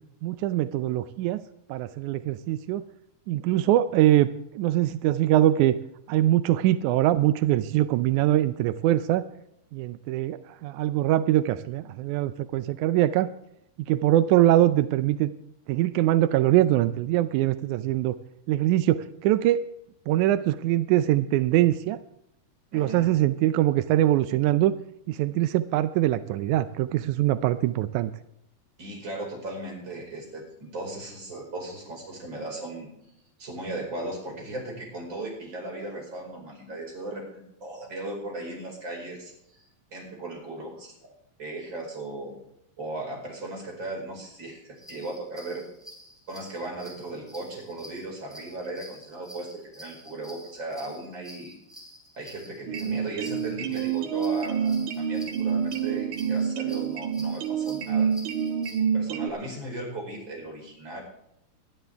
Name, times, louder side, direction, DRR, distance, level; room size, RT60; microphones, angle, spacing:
voice 1, 0.2-1.4 1.7-2.8 3.3-5.8 6.1-9.2 9.7-13.3 13.9-15.3 15.7-18.2 18.5-19.7 20.1-22.0 22.7-24.7 25.1-28.1, right 13 dB, 85° right, 12 dB, 1.7 m, -23 dB
voice 2, 22.7-23.1 28.8-32.9 33.4-39.6 39.9-41.1 41.4-42.4 42.8-45.6 46.3-51.6 52.1-58.1 58.9-61.0, right 2 dB, 30° right, -1 dB, 5.5 m, -37 dB
sound 1, 44.8-58.8, equal, ahead, 2.9 m, -49 dB
sound 2, 52.7-59.3, right 7 dB, 65° right, 2.5 m, -27 dB
21.0 x 12.5 x 3.5 m, 0.78 s
omnidirectional pair, 4.1 m